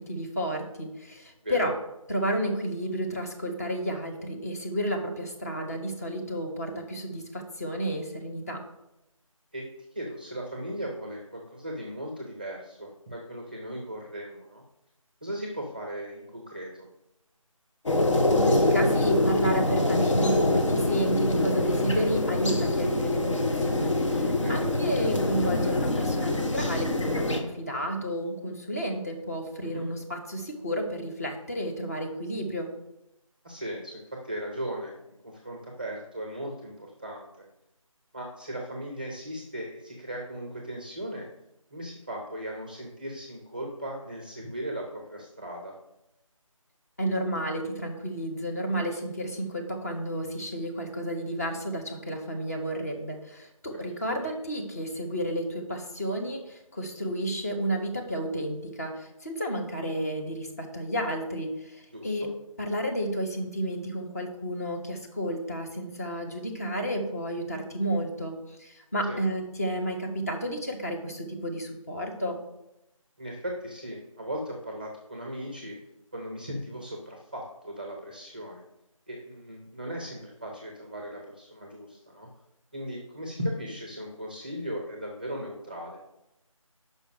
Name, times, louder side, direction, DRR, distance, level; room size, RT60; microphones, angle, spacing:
voice 1, 0.0-1.7 2.1-8.6 18.3-32.7 47.0-62.3 62.6-72.4, equal, 25° left, 1 dB, 0.9 m, -31 dB
voice 2, 9.9-14.6 15.2-16.9 24.4-24.7 29.6-29.8 33.4-35.0 35.2-37.3 38.1-41.3 41.7-45.7 53.9-54.2 61.9-62.3 69.1-69.2 73.2-75.8 76.1-78.6 79.1-82.3 82.7-86.0, equal, 15° right, 0 dB, 0.6 m, -37 dB
sound 1, 17.9-27.4, left 2 dB, 60° left, 1.2 m, -25 dB
5.4 x 5.0 x 6.4 m, 0.88 s
figure-of-eight pair, 165°, 18 cm